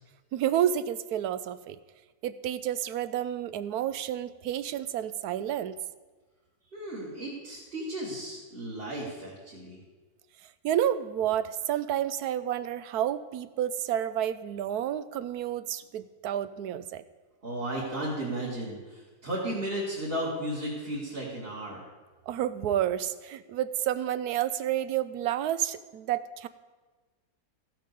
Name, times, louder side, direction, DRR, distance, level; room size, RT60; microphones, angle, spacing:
voice 1, 0.3-1.8 2.2-5.7 10.6-17.0 22.3-26.5, right 11 dB, 70° right, 14 dB, 1.0 m, -30 dB
voice 2, 6.7-9.8 17.4-21.8, right 1 dB, 35° right, -7 dB, 2.4 m, -34 dB
14.5 x 7.5 x 6.7 m, 1.3 s
omnidirectional pair, 1.9 m